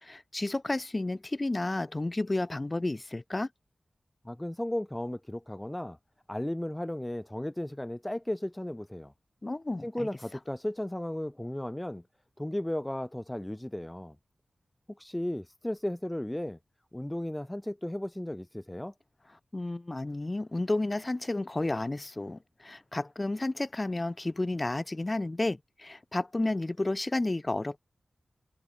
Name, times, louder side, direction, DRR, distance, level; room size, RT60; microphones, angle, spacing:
voice 1, 0.0-3.5 9.4-10.1 19.5-27.8, left 2 dB, 30° left, 0.9 m, -31 dB
voice 2, 4.2-6.0 6.3-9.1 9.8-12.0 12.4-14.2 15.0-16.6 16.9-18.9, left 1 dB, 10° left, 0.3 m, -35 dB
wide cardioid pair, 75°, 0 cm